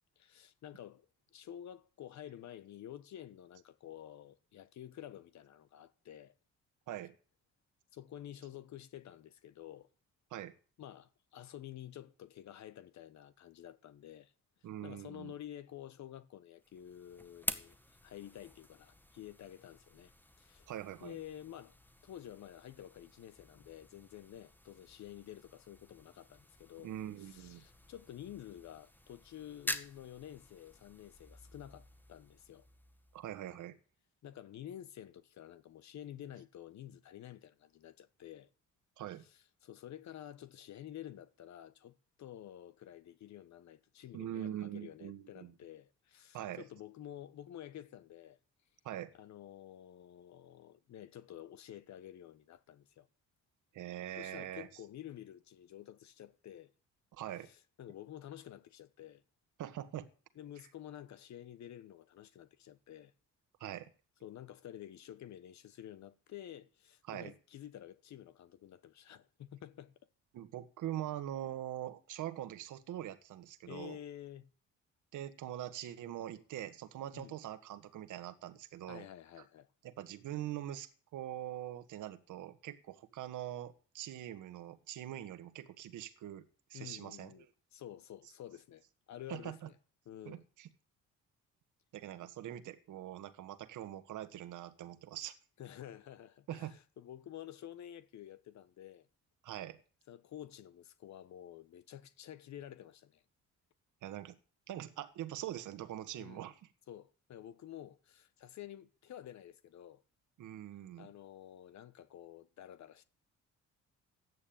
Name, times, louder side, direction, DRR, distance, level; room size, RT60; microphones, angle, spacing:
voice 1, 0.2-6.4 7.9-9.9 10.8-14.3 14.6-17.8 18.0-20.7 21.0-21.8 22.0-32.7 34.2-38.5 39.2-48.4 49.1-53.1 54.2-56.7 57.4-59.2 60.3-63.1 64.2-69.9 73.7-74.5 77.1-77.3 78.9-79.7 86.7-87.5 87.7-89.7 90.1-90.4 95.6-99.1 100.1-103.2 106.2-106.4 106.9-110.0 111.0-113.0, left 11 dB, 65° left, 1.1 m, -50 dB
voice 2, 14.6-15.3 20.7-21.2 26.8-27.6 33.1-33.8 39.0-39.2 44.1-45.5 46.3-46.6 48.8-49.1 53.7-54.7 57.1-57.5 59.6-60.1 63.6-63.9 67.1-67.3 70.3-74.0 75.1-79.0 79.8-86.4 86.7-87.5 89.3-89.6 90.2-90.7 91.9-95.4 96.5-96.8 99.4-99.8 104.0-104.4 104.7-106.6 110.4-111.1, right 12 dB, 80° right, 1.6 m, -43 dB
sound 1, 16.6-33.6, left 1 dB, 5° left, 1.7 m, -48 dB
14.0 x 9.7 x 8.8 m
cardioid pair, 90°, 30 cm